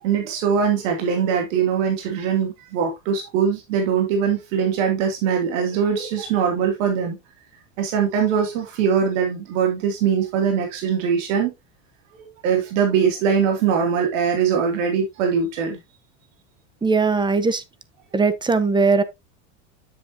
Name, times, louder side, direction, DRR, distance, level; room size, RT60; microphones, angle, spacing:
voice 1, 0.0-7.2 7.8-11.5 12.1-15.8, right 7 dB, 70° right, 2.6 m, -22 dB
voice 2, 16.8-17.6 18.1-19.0, right 4 dB, 10° right, 0.8 m, -19 dB
7.7 x 7.6 x 2.7 m
supercardioid pair, 110°, 38 cm